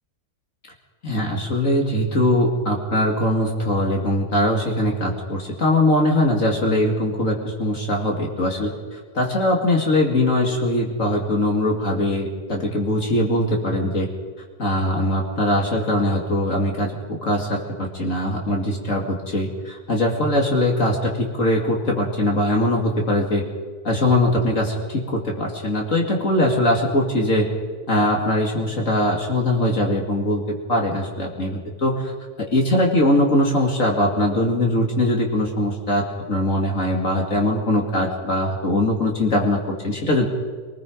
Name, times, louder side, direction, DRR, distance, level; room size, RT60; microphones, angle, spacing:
voice 1, 1.0-14.1 14.6-23.4 23.8-27.5 27.9-32.1 32.4-40.3, left 1 dB, 55° left, 0 dB, 2.5 m, -21 dB
27.5 x 19.5 x 5.1 m, 1.5 s
omnidirectional pair, 1.7 m